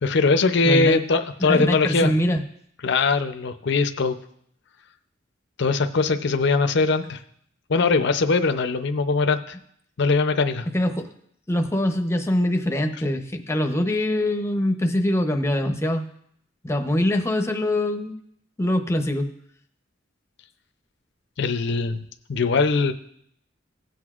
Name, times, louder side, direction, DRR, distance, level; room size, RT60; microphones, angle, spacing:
voice 1, 0.0-2.1 2.8-4.2 5.6-7.2 7.7-9.6 10.0-10.7 21.4-22.0 22.3-22.9, left 4 dB, 65° left, 9 dB, 0.6 m, -21 dB
voice 2, 0.6-1.0 1.4-2.4 10.7-11.1 11.5-16.0 16.6-18.2 18.6-19.3, left 1 dB, 15° left, 5 dB, 0.7 m, -23 dB
17.0 x 7.8 x 2.4 m, 0.69 s
head